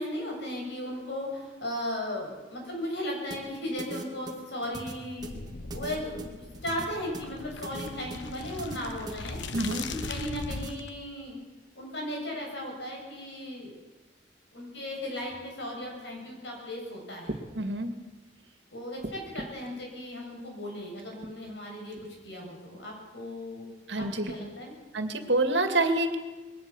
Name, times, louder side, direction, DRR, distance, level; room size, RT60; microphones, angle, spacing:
voice 1, 0.0-5.4 5.7-9.4 9.8-11.4 11.8-13.7 14.5-17.4 18.7-23.7 23.9-24.7, left 1 dB, 70° left, 0 dB, 7.6 m, -36 dB
sound 1, 3.3-10.7, right 2 dB, 25° right, 2.2 m, -41 dB
sound 2, 5.2-10.9, left 3 dB, 90° left, 1.2 m, -40 dB
voice 2, 9.5-9.9 17.5-17.9 23.9-24.3 24.9-26.2, right 2 dB, 75° right, 7 dB, 2.3 m, -27 dB
sound 3, 17.2-17.5 19.0-19.7 21.0-21.3 21.9-22.1 24.0-24.4 25.3-25.4, right 1 dB, 50° right, 2.0 m, -39 dB
21.5 x 18.0 x 7.1 m, 1.3 s
head